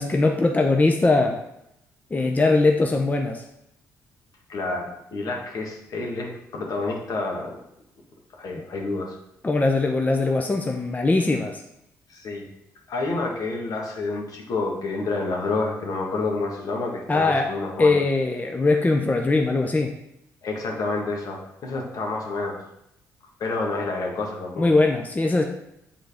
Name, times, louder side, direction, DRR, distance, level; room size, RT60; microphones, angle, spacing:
voice 1, 0.0-1.4 2.1-3.4 9.4-11.6 17.1-17.5 17.8-19.9 24.6-25.4, left 3 dB, 25° left, 3 dB, 0.7 m, -21 dB
voice 2, 4.5-7.6 8.4-9.2 12.1-12.5 12.9-18.0 20.4-22.6 23.4-24.7, left 3 dB, 60° left, 0 dB, 1.6 m, -29 dB
6.8 x 3.9 x 4.9 m, 0.82 s
supercardioid pair, 65°, 7 cm